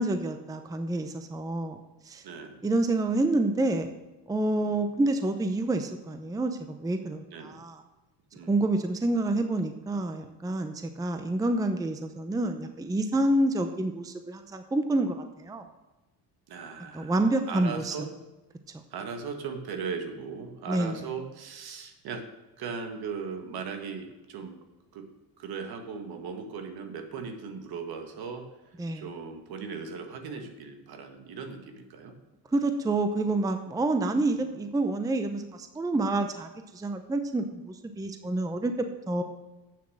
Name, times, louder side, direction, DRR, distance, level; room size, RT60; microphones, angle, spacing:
voice 1, 0.0-2.2 2.6-3.9 4.3-7.8 8.5-15.6 16.9-18.0 18.7-18.8 20.7-21.0 28.8-29.1 32.5-39.2, right 2 dB, 10° right, 8 dB, 0.6 m, -28 dB
voice 2, 2.2-2.6 4.6-4.8 7.3-7.6 8.3-8.6 16.5-17.1 17.5-18.1 18.9-22.2 22.6-24.6 24.9-25.1 25.4-28.5 29.0-32.2 34.0-34.5, right 5 dB, 60° right, 6 dB, 1.8 m, -38 dB
8.6 x 7.2 x 6.3 m, 1.1 s
cardioid pair, 120°, 42 cm